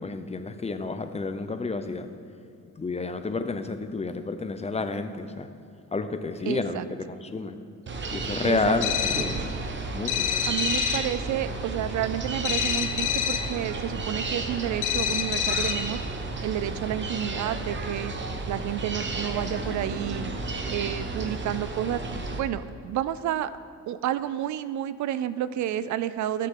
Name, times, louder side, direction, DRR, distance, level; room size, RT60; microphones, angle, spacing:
voice 1, 0.0-2.1 2.8-5.5 5.9-7.6 8.1-9.3 9.9-10.3, left 3 dB, 20° left, 9 dB, 0.7 m, -30 dB
voice 2, 6.5-6.8 8.4-8.8 10.5-16.0 16.4-18.1 18.5-20.3 20.7-22.0 22.4-23.5 23.9-26.5, right 11 dB, 70° right, 15 dB, 0.5 m, -30 dB
sound 1, 7.9-22.4, right 3 dB, 40° right, 1.1 m, -33 dB
sound 2, 8.8-9.5 10.1-11.2 12.4-13.6 14.8-16.0, left 10 dB, 80° left, 0.8 m, -27 dB
16.5 x 6.6 x 3.8 m, 2.5 s
cardioid pair, 90°, 30 cm